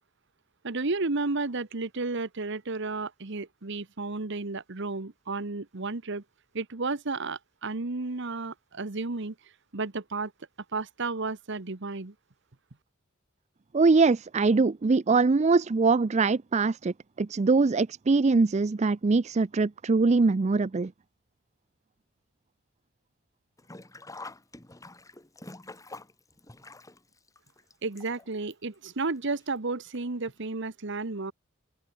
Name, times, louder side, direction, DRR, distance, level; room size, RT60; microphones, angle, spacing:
voice 1, 0.6-6.2 6.5-9.3 9.7-10.3 10.7-12.1 27.8-31.3, right 3 dB, 60° right, 1.2 m, -32 dB
voice 2, 13.7-20.9, right 4 dB, 35° right, 0.4 m, -23 dB
Sink (filling or washing), 23.6-28.5 28.8-28.9 29.9-30.0 30.4-30.5, left 2 dB, 15° left, 1.5 m, -46 dB
open air
head